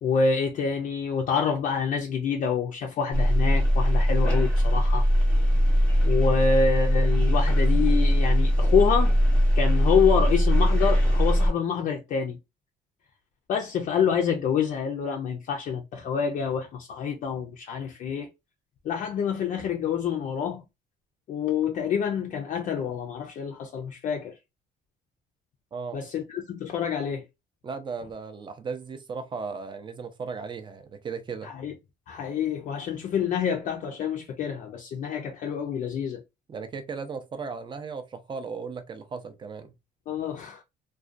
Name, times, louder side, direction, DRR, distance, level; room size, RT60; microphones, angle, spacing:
voice 1, 0.0-5.1 6.0-9.1 9.6-12.4 13.5-18.3 18.8-20.6 21.3-24.3 25.9-27.3 31.4-31.7 32.1-36.2 40.1-40.6, left 6 dB, 50° left, 0.4 m, -27 dB
sound 1, 3.1-11.5, equal, 5° left, 0.9 m, -21 dB
voice 2, 25.7-26.0 27.6-31.5 36.5-39.7, right 5 dB, 25° right, 0.5 m, -36 dB
2.3 x 2.2 x 2.4 m
cardioid pair, 110°, 17 cm